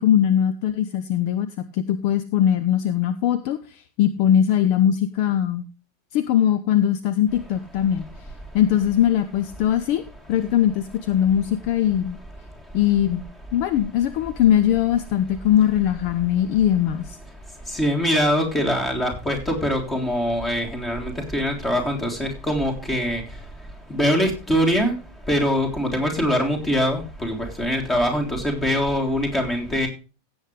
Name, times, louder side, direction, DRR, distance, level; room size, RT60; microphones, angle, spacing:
voice 1, 0.0-5.7 6.1-8.1 8.5-10.0 10.3-12.2 12.7-13.2 13.5-17.2, left 10 dB, 45° left, 13 dB, 0.8 m, -21 dB
voice 2, 17.7-23.2 23.9-24.9 25.3-29.9, equal, 15° left, 3 dB, 3.5 m, -23 dB
16.5 x 8.1 x 3.3 m, 0.32 s
figure-of-eight pair, 90°, 0 cm